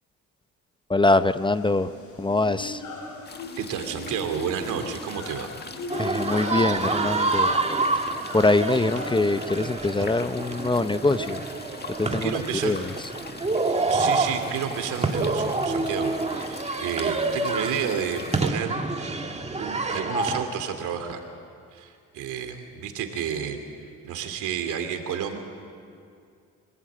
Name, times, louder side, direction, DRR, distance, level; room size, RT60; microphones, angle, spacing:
voice 1, 0.9-1.9 2.2-2.8 6.0-7.6 7.9-8.1 8.3-11.4 11.9-13.1, left 2 dB, 15° left, 12 dB, 0.7 m, -23 dB
sound 1, 1.1-9.7, left 3 dB, 75° left, 6.6 m, -39 dB
sound 2, 3.2-18.5, left 4 dB, 35° left, 1.8 m, -43 dB
voice 2, 3.6-5.5 12.2-12.8 13.9-18.7 19.6-21.2 21.7-23.6 24.0-25.4, right 8 dB, 85° right, 6 dB, 2.7 m, -31 dB
sound 3, 5.9-20.5, right 3 dB, 20° right, 1.8 m, -28 dB
25.5 x 17.0 x 8.7 m, 2.3 s
cardioid pair, 90°, 30 cm